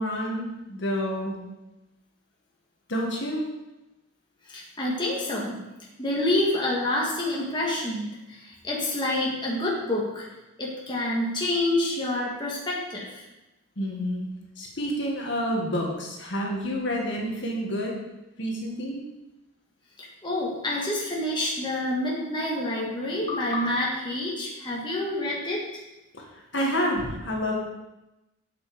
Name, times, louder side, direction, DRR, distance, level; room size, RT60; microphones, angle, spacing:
voice 1, 0.0-1.4 2.9-3.4 13.8-14.3 14.6-18.0 18.4-19.0 26.1-27.6, equal, 55° left, -1 dB, 1.7 m, -29 dB
voice 2, 4.4-5.6 6.0-10.3 10.6-13.2 20.0-25.6, left 1 dB, 20° left, -4 dB, 1.6 m, -28 dB
7.8 x 7.4 x 5.0 m, 0.99 s
head